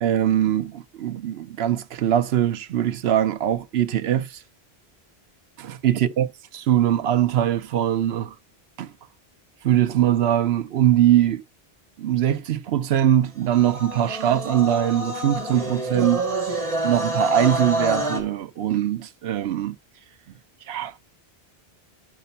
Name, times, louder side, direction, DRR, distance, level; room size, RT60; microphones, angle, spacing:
voice 1, 0.0-4.4 5.6-6.3 6.5-8.3 8.8-8.9 9.6-11.4 12.0-16.2 16.8-19.8 20.7-20.9, right 11 dB, 90° right, 0.9 m, -22 dB
sound 1, 13.5-18.2, right 1 dB, 35° right, 2.0 m, -27 dB
6.7 x 6.6 x 5.6 m
omnidirectional pair, 1.0 m